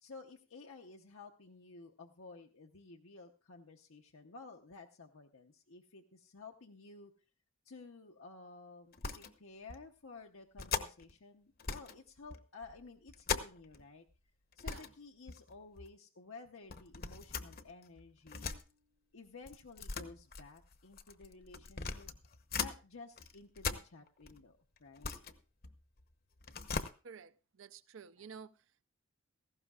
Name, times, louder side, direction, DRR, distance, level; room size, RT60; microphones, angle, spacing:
voice 1, 0.0-7.1 7.6-14.0 14.6-18.5 19.1-22.1 22.6-25.1 28.2-28.3, left 3 dB, 75° left, 0.9 m, -53 dB
sound 1, 8.9-9.4 9.7-9.8 10.6-11.1 11.6-12.0 12.3-13.8 14.1-14.2 14.5-14.9 15.3-15.9 16.7-18.6 19.5-22.8 23.2-24.4 24.8-26.0 26.4-26.9, left 5 dB, 45° left, 0.9 m, -40 dB
voice 2, 27.0-28.6, right 6 dB, 65° right, 0.6 m, -52 dB
17.5 x 15.0 x 2.4 m
head